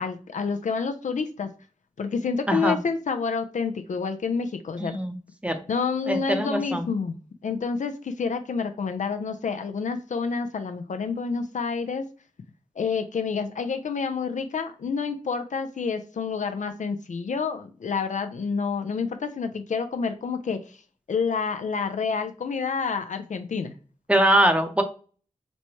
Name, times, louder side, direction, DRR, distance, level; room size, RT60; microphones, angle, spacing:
voice 1, 0.0-1.5 2.0-4.9 5.7-7.2 7.4-12.0 12.8-20.8 21.1-23.7, left 5 dB, 65° left, 8 dB, 0.4 m, -28 dB
voice 2, 4.8-5.1 5.4-5.6 6.1-6.9 24.1-24.8, right 1 dB, 10° right, 6 dB, 0.7 m, -22 dB
4.1 x 2.1 x 3.0 m, 0.39 s
cardioid pair, 40°, 14 cm